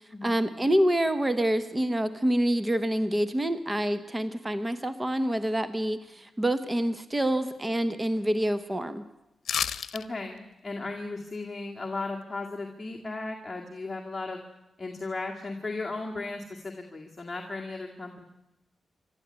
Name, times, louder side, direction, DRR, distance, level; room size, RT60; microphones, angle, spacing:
voice 1, 0.2-9.0, right 1 dB, 15° right, 12 dB, 0.9 m, -27 dB
sound 1, 9.4-10.0 10.4-10.5, left 8 dB, 80° left, 0.8 m, -29 dB
voice 2, 9.9-14.4 14.8-18.2, left 3 dB, 20° left, 0 dB, 2.1 m, -36 dB
27.0 x 12.5 x 9.7 m, 0.95 s
wide cardioid pair, 120°, 0 cm